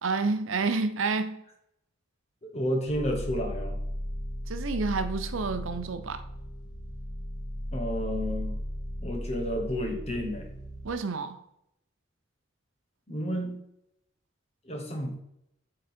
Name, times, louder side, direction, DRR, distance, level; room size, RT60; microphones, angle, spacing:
voice 1, 0.0-1.4 4.5-6.2 10.8-11.4, right 4 dB, 75° right, 9 dB, 0.6 m, -29 dB
voice 2, 2.5-3.8 7.7-8.6 9.0-10.5 13.1-13.6 14.6-15.1, equal, 30° left, 2 dB, 1.3 m, -31 dB
sound 1, 2.9-10.9, equal, 75° left, 1.4 m, -36 dB
8.4 x 3.9 x 4.4 m, 0.79 s
head